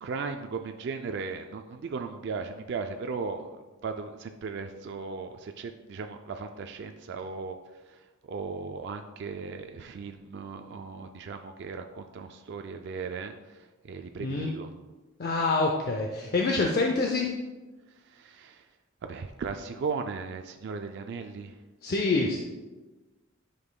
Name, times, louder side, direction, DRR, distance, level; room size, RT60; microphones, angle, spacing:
voice 1, 0.0-14.7 17.9-18.7 19.0-21.6, right 4 dB, 55° right, 6 dB, 0.3 m, -37 dB
voice 2, 14.2-14.5 15.2-17.3 21.8-22.4, left 3 dB, 45° left, 1 dB, 0.5 m, -26 dB
9.8 x 5.3 x 2.2 m, 1.2 s
head